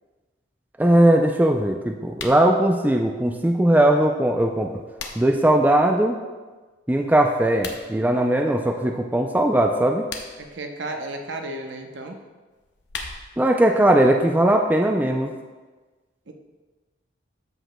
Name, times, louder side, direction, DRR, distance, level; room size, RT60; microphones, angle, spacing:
voice 1, 0.8-4.7 5.2-6.2 6.9-10.1 13.4-15.3, right 1 dB, 10° right, 2 dB, 0.3 m, -19 dB
sound 1, 2.1-2.4 4.5-5.4 7.5-7.8 9.9-10.5 12.5-13.5, left 4 dB, 65° left, 0.8 m, -37 dB
voice 2, 10.4-12.2 16.3-16.4, right 2 dB, 70° right, 4 dB, 0.7 m, -33 dB
13.5 x 5.0 x 2.2 m, 1.3 s
head